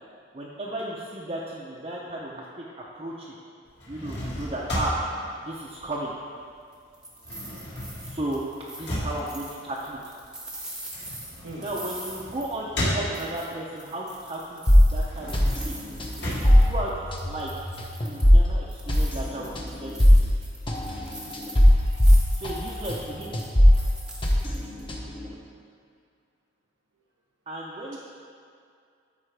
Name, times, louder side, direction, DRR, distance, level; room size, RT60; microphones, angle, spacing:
voice 1, 0.3-3.3 3.9-5.0 5.4-6.1 8.0-8.4 8.8-10.0 11.6-14.6 14.9-15.7 16.2-17.5 18.0-20.1 22.3-23.3 27.5-28.0, right 1 dB, 30° right, -5 dB, 0.6 m, -34 dB
sound 1, 3.7-6.5 6.8-13.6 14.1-17.6, equal, 55° left, 1.9 m, -34 dB
sound 2, 6.7-12.9 13.1-16.9 17.2-18.4 18.7-24.8, right 1 dB, 5° right, 0.9 m, -43 dB
sound 3, 14.7-23.1 23.3-25.3, equal, 25° left, 0.8 m, -20 dB
voice 2, 20.4-20.9 21.7-22.2 23.6-23.9, right 1 dB, 80° right, -4 dB, 1.2 m, -46 dB
12.0 x 4.7 x 3.3 m, 2.4 s
head